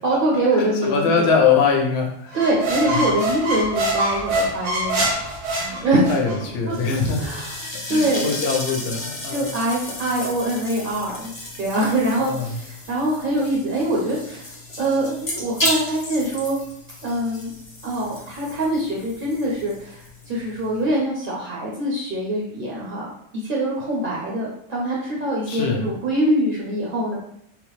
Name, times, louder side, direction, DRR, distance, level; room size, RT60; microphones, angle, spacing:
voice 1, 0.0-1.3 2.3-5.1 5.7-6.1 6.7-6.8 7.2-7.5 7.9-8.3 9.3-11.3 11.6-14.5 14.8-16.6 17.0-17.5 17.8-23.1 23.3-27.2, right 1 dB, 50° right, -4 dB, 0.7 m, -24 dB
voice 2, 0.5-2.4 2.8-3.0 5.5-7.3 7.9-9.5 12.2-12.6 25.5-25.9, left 5 dB, 60° left, 1 dB, 0.8 m, -23 dB
sound 1, 2.3-6.4, right 1 dB, 70° right, 1.1 m, -24 dB
sound 2, 6.7-20.9, left 1 dB, 40° left, 0.4 m, -33 dB
3.6 x 2.0 x 3.1 m, 0.71 s
omnidirectional pair, 1.4 m